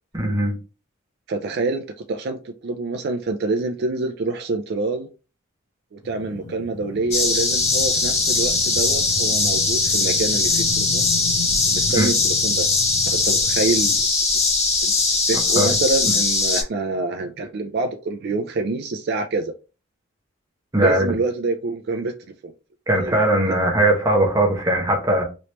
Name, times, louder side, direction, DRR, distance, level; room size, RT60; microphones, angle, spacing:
voice 1, 0.1-0.5 11.9-12.1 15.6-15.7 20.7-21.1 22.9-25.2, right 1 dB, 15° right, 0.8 m, -19 dB
voice 2, 1.3-5.1 5.9-11.1 11.7-12.7 13.1-14.0 14.8-14.9 15.3-19.5 20.8-22.1 23.0-23.2, right 3 dB, 50° right, 0.4 m, -26 dB
sound 1, 6.0-14.0, left 2 dB, 75° left, 1.0 m, -35 dB
sound 2, 7.1-16.6, left 3 dB, 35° left, 0.9 m, -20 dB
3.1 x 3.0 x 2.9 m
head